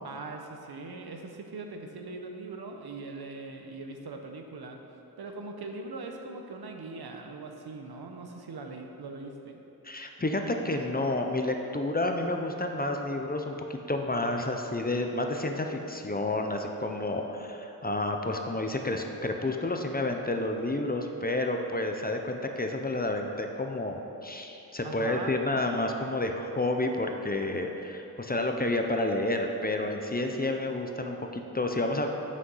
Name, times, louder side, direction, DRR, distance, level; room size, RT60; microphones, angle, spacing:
voice 1, 0.0-4.8 5.2-9.6 24.8-25.4, right 3 dB, 75° right, 3 dB, 0.9 m, -41 dB
voice 2, 9.8-32.1, left 2 dB, 25° left, 4 dB, 0.6 m, -30 dB
7.5 x 6.4 x 5.5 m, 3.0 s
wide cardioid pair, 90°, 38 cm